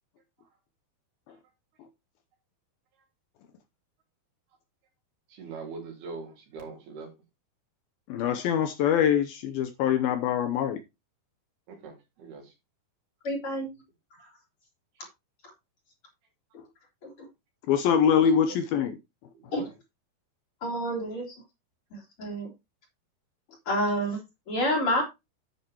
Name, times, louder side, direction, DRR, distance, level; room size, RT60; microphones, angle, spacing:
voice 1, 5.3-7.1 11.7-12.5 14.2-14.3 18.2-18.6 19.3-19.7, right 4 dB, 70° right, 5.1 m, -42 dB
voice 2, 8.1-10.8 17.7-19.0, left 8 dB, 75° left, 2.4 m, -24 dB
voice 3, 13.2-13.7 17.0-17.1 19.5-19.6 20.6-21.4 21.9-22.5 23.7-24.2 24.5-25.0, equal, 35° left, 3.9 m, -28 dB
10.0 x 8.7 x 2.9 m
omnidirectional pair, 4.8 m